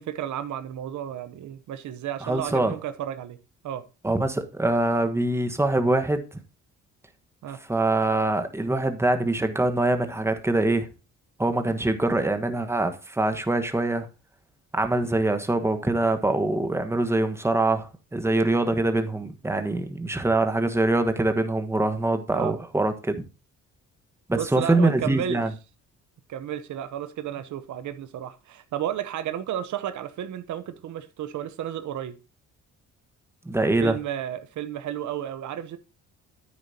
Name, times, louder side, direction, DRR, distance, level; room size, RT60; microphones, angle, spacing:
voice 1, 0.0-3.4 3.6-3.8 7.4-7.6 22.3-22.5 24.3-25.4 26.3-32.2 33.8-35.8, right 10 dB, 75° right, 0.9 m, -32 dB
voice 2, 2.2-2.7 4.0-6.2 7.7-10.9 11.4-14.1 14.7-23.2 24.3-25.5 33.4-34.0, right 2 dB, 10° right, 1.3 m, -24 dB
10.0 x 8.9 x 2.8 m
cardioid pair, 90°, 30 cm